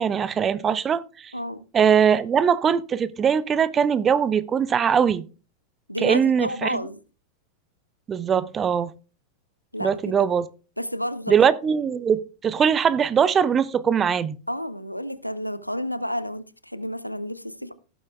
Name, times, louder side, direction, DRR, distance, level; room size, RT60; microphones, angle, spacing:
voice 1, 0.0-1.3 1.7-5.3 6.0-6.8 8.1-8.9 9.8-10.5 11.3-14.4, right 7 dB, 25° right, 0.6 m, -21 dB
voice 2, 1.3-1.6 5.9-7.0 9.7-10.0 10.8-11.5 14.5-17.7, equal, 90° left, 0.6 m, -30 dB
16.5 x 7.9 x 2.2 m
figure-of-eight pair, 90°, 0 cm